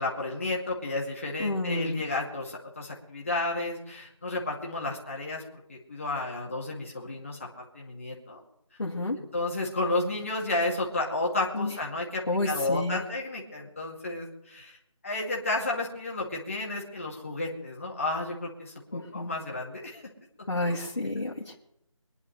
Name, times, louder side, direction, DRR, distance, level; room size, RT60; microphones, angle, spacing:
voice 1, 0.0-5.4 5.7-8.4 9.1-14.8 15.0-20.0 20.7-20.8, left 2 dB, 25° left, -2 dB, 2.3 m, -32 dB
voice 2, 1.4-2.0 8.8-9.2 11.5-11.7 12.3-13.0 18.9-19.3 20.5-21.6, left 2 dB, 55° left, -6 dB, 2.5 m, -30 dB
24.0 x 10.5 x 3.3 m, 0.78 s
figure-of-eight pair, 175°, 17 cm